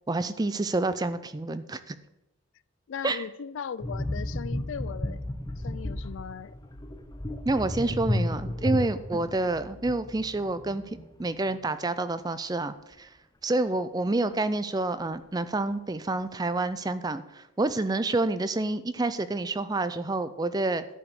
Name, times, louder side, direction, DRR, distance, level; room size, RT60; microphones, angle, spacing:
voice 1, 0.1-2.0 3.0-3.2 7.5-13.1 13.4-20.8, right 2 dB, 20° right, 0.4 m, -28 dB
voice 2, 2.9-5.2 5.6-6.5, left 7 dB, 65° left, 0.3 m, -38 dB
sound 1, 3.8-11.2 11.5-11.7, left 1 dB, 20° left, 0.6 m, -33 dB
10.5 x 4.9 x 8.2 m
head